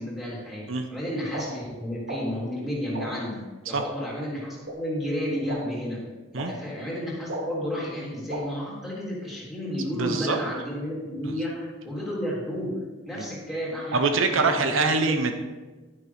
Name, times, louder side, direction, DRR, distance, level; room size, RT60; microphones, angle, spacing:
voice 1, 0.0-6.0 6.3-12.8 13.0-14.0 14.3-15.1, equal, ahead, -6 dB, 3.3 m, -32 dB
sound 1, 1.3-1.4 2.1-2.2 2.9-3.1 3.8-3.9 4.7-4.8 5.5-5.6 6.4-6.5 7.3-7.4 8.3-8.4, right 2 dB, 45° right, 1.8 m, -33 dB
voice 2, 9.9-10.4 13.2-13.3 13.9-15.3, right 4 dB, 85° right, 6 dB, 0.8 m, -24 dB
11.0 x 9.6 x 3.4 m, 1.2 s
head